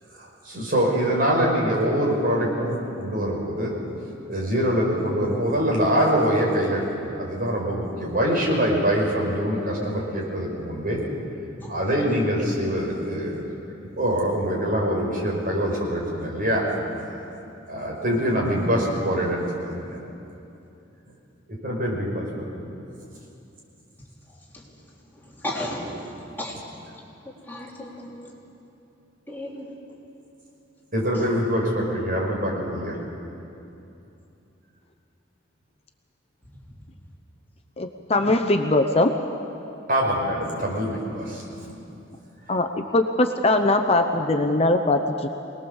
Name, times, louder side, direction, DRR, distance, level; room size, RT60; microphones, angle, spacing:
voice 1, 0.1-3.7 4.3-11.0 11.7-13.4 14.0-16.6 17.1-17.2 17.7-20.0 21.5-22.7 30.9-33.0 39.9-41.7, equal, 50° right, -2 dB, 5.4 m, -24 dB
voice 2, 24.3-26.8 27.2-28.3 29.3-29.7 31.1-31.3, left 1 dB, 10° left, -4 dB, 3.3 m, -36 dB
voice 3, 37.8-39.1 42.5-45.3, left 2 dB, 30° left, 6 dB, 0.8 m, -21 dB
25.0 x 20.0 x 7.2 m, 2.8 s
head